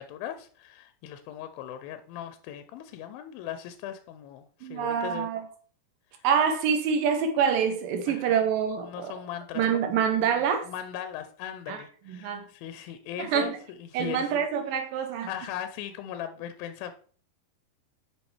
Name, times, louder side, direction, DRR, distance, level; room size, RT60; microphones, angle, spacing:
voice 1, 0.0-5.3 6.1-6.3 8.1-8.4 8.8-9.9 10.2-14.4 15.3-16.9, left 10 dB, 80° left, 9 dB, 2.3 m, -39 dB
voice 2, 4.6-5.4 6.2-9.1 9.6-10.7 11.7-11.8 12.1-12.5 13.2-13.6 13.9-15.3, right 7 dB, 75° right, 6 dB, 2.3 m, -26 dB
8.3 x 5.8 x 3.2 m, 0.43 s
omnidirectional pair, 4.4 m